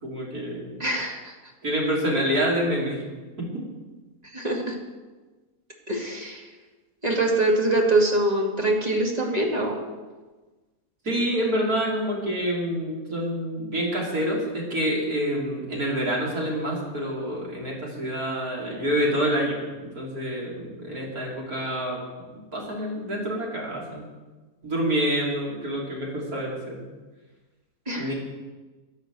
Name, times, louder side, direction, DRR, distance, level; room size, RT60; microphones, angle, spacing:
voice 1, 0.0-0.8 1.6-3.0 11.0-22.0 22.5-24.1 24.6-26.8 27.9-28.1, equal, 60° right, -4 dB, 4.0 m, -27 dB
voice 2, 0.8-1.3 4.3-4.8 5.9-6.5 7.0-9.8 27.9-28.1, right 2 dB, 25° right, -1 dB, 2.4 m, -24 dB
11.5 x 10.0 x 7.8 m, 1.2 s
omnidirectional pair, 1.8 m